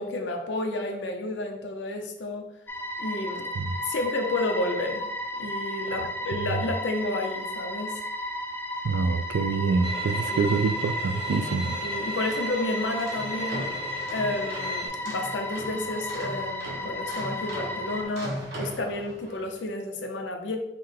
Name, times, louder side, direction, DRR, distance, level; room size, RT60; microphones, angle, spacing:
voice 1, 0.0-2.5 3.0-3.5 3.8-5.1 5.4-8.0 10.3-10.5 11.8-13.7 14.1-20.6, left 2 dB, 90° left, 4 dB, 0.6 m, -31 dB
sound 1, 2.7-18.0, left 1 dB, 10° left, 0.3 m, -34 dB
voice 2, 5.9-6.4 8.8-11.8, right 4 dB, 80° right, 11 dB, 0.3 m, -26 dB
Bowed string instrument, 9.8-14.9, right 1 dB, 30° right, 0.8 m, -35 dB
sound 2, 12.8-19.5, right 1 dB, 65° right, 1.1 m, -39 dB
5.7 x 2.1 x 3.3 m, 0.86 s
head